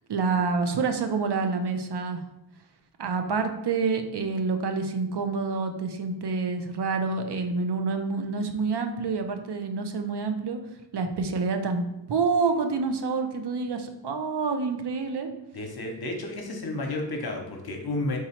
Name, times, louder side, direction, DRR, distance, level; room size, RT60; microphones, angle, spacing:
voice 1, 0.1-2.2 3.0-10.6 10.9-15.3, right 4 dB, 60° right, 6 dB, 0.6 m, -27 dB
voice 2, 15.5-18.2, left 2 dB, 55° left, 3 dB, 0.9 m, -31 dB
3.6 x 3.0 x 4.3 m, 0.90 s
cardioid pair, 60°, 45 cm